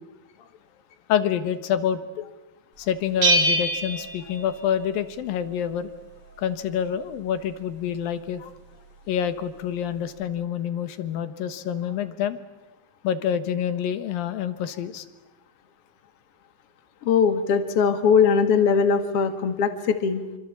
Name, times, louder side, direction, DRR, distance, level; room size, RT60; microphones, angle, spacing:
voice 1, 1.1-2.3 2.8-5.9 6.4-8.5 9.1-12.4 13.0-15.0, left 9 dB, 90° left, 11 dB, 3.2 m, -27 dB
Bell, 3.2-5.0, right 1 dB, 50° right, 4.9 m, -24 dB
voice 2, 17.0-20.2, left 6 dB, 50° left, 8 dB, 2.5 m, -20 dB
26.5 x 25.5 x 8.5 m, 1.0 s
omnidirectional pair, 4.0 m